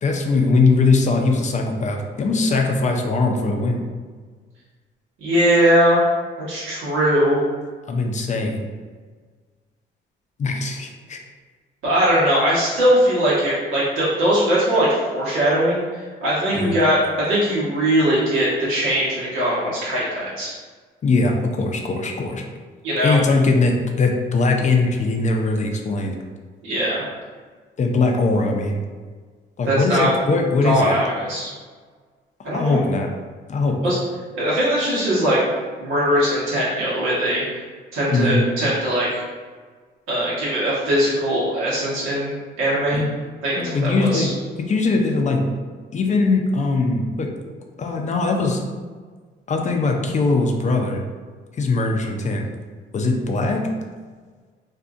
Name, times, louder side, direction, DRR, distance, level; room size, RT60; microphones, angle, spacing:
voice 1, 0.0-3.8 7.9-8.7 10.4-11.2 16.5-16.7 21.0-22.4 23.0-26.2 27.8-28.8 29.6-31.0 32.5-33.1 33.5-33.8 38.1-38.4 42.9-43.1 43.6-44.3 44.7-45.4 45.9-47.3 47.8-48.6 49.5-51.0 51.6-52.4 52.9-53.7, left 3 dB, 35° left, 2 dB, 0.4 m, -20 dB
voice 2, 5.2-6.0 6.5-7.4 11.8-15.8 16.2-20.5 22.8-23.2 26.6-27.0 29.7-30.1 30.6-31.5 32.4-32.8 33.8-34.0 34.3-35.4 35.8-37.6 37.9-39.2 40.1-43.0 43.4-44.3, equal, 90° right, -8 dB, 1.2 m, -20 dB
2.6 x 2.5 x 2.4 m, 1.5 s
cardioid pair, 90°, 20 cm